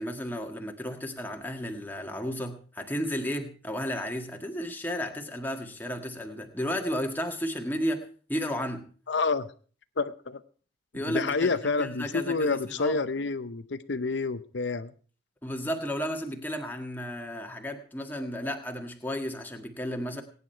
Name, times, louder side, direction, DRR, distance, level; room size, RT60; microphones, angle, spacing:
voice 1, 0.0-8.9 10.9-11.5 11.8-13.0 15.4-20.2, equal, 10° left, 3 dB, 1.7 m, -33 dB
voice 2, 9.1-9.5 10.0-10.4 11.1-14.9, left 4 dB, 75° left, 11 dB, 0.8 m, -28 dB
22.0 x 9.8 x 4.5 m, 0.42 s
head